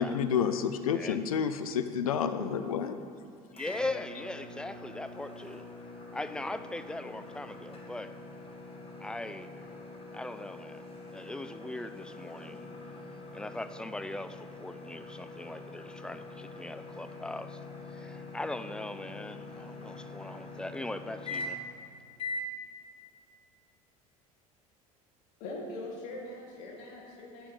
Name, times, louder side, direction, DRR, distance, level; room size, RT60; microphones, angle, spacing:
voice 1, 0.0-3.0, left 7 dB, 80° left, 0.4 m, -29 dB
sound 1, 3.5-21.8 22.2-22.5, left 2 dB, 30° left, 1.5 m, -44 dB
voice 2, 3.5-5.7 6.1-8.2 9.0-9.7 10.1-12.7 13.3-21.6, left 2 dB, 5° left, 0.4 m, -40 dB
voice 3, 25.4-27.5, left 2 dB, 65° left, 1.7 m, -41 dB
11.0 x 8.8 x 3.2 m
figure-of-eight pair, 65°, 18 cm